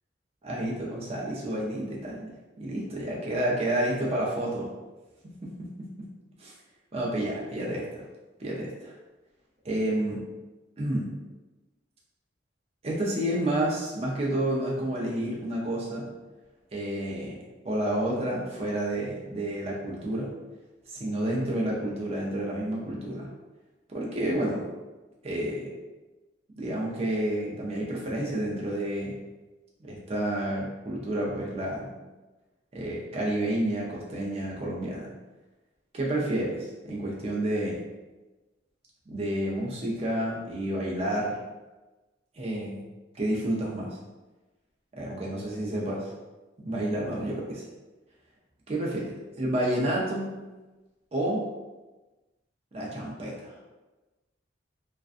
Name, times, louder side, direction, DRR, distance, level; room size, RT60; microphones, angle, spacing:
voice 1, 0.4-2.3 2.6-4.7 5.4-6.1 6.4-6.5 6.9-8.0 8.4-8.9 9.6-10.2 10.8-11.1 12.8-16.1 16.7-17.4 17.6-20.3 20.9-23.3 23.9-24.7 25.2-25.7 26.6-29.2 29.8-31.8 32.7-35.1 35.9-37.8 39.1-41.4 42.3-42.8 43.1-44.0 44.9-46.1 46.6-47.6 48.7-50.3 51.1-51.5 52.7-53.6, right 1 dB, 35° right, -3 dB, 0.5 m, -30 dB
2.5 x 2.2 x 2.4 m, 1.2 s
head